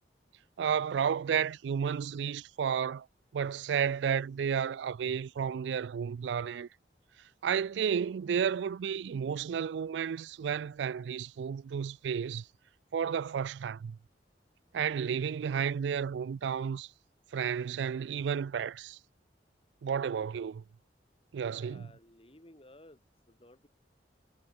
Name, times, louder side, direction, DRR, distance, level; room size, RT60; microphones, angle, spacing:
voice 1, 0.6-3.1 3.3-6.7 7.4-12.5 12.9-14.0 14.7-16.9 17.3-19.0 19.8-20.6 21.3-21.9, right 7 dB, 80° right, 0.3 m, -32 dB
voice 2, 21.4-23.7, left 1 dB, 30° left, 4.7 m, -57 dB
head